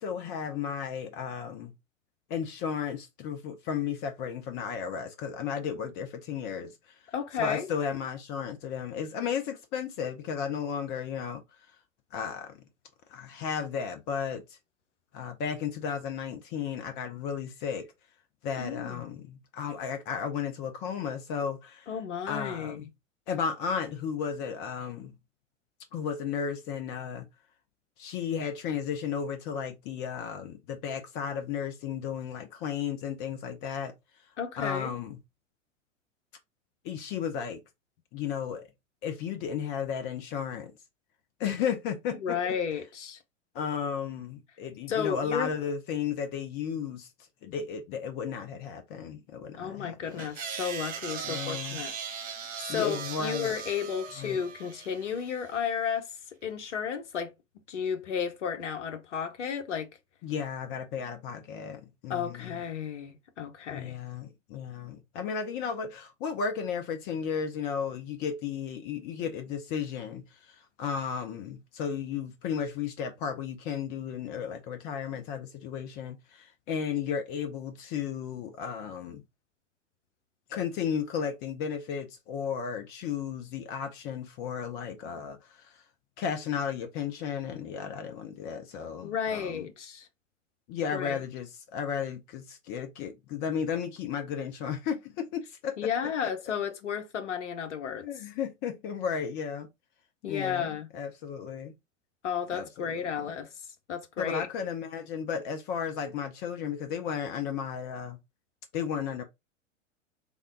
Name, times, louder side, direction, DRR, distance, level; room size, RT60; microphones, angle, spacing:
voice 1, 0.0-1.7 2.3-11.4 12.1-12.6 13.1-14.6 15.1-17.9 18.4-21.9 22.3-22.9 23.3-25.2 25.9-27.3 28.0-33.9 34.6-35.2 36.8-37.6 38.1-38.7 39.0-40.7 41.4-42.4 43.5-47.1 47.4-50.2 51.2-51.8 52.7-53.5 54.2-54.4 60.2-62.6 63.7-79.2 80.5-85.8 86.2-89.6 90.7-95.7 96.0-96.1 98.0-99.7 100.2-101.7 102.5-103.3 104.2-108.2 108.7-109.2, left 7 dB, 25° left, 0.5 m, -34 dB
voice 2, 7.1-7.7 18.6-19.0 21.9-22.9 34.4-34.9 42.1-43.2 44.9-45.5 49.6-51.9 52.3-56.1 56.4-57.3 57.7-59.9 62.1-64.0 89.0-90.1 90.9-91.2 95.8-98.1 100.2-100.9 102.2-103.5 103.9-104.5, left 7 dB, 60° left, 0.9 m, -33 dB
sound 1, 50.2-55.5, right 7 dB, 20° right, 0.6 m, -39 dB
3.5 x 2.2 x 3.7 m
figure-of-eight pair, 95°, 39 cm